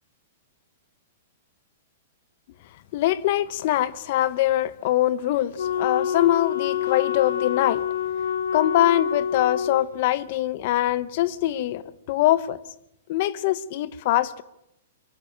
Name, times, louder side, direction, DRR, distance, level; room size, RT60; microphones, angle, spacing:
voice 1, 2.9-7.8 8.5-11.8 12.1-12.6 13.1-14.4, left 14 dB, 40° left, 0.7 m, -23 dB
Wind instrument woodwind instrument, 5.6-9.9, left 8 dB, 85° left, 1.1 m, -26 dB
23.5 x 14.5 x 9.0 m
hypercardioid pair, 165°, 0 cm